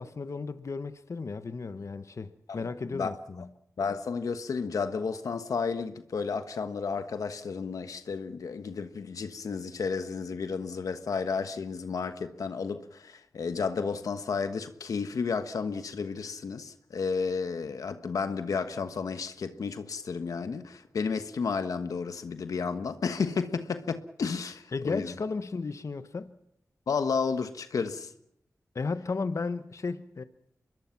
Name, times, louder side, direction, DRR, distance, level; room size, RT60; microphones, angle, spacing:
voice 1, 0.0-3.5 24.7-26.4 28.7-30.2, left 4 dB, 60° left, 1.1 m, -34 dB
voice 2, 2.5-3.1 3.8-25.1 26.9-28.1, left 5 dB, 90° left, 1.3 m, -32 dB
25.0 x 21.5 x 5.9 m
cardioid pair, 65°, 6 cm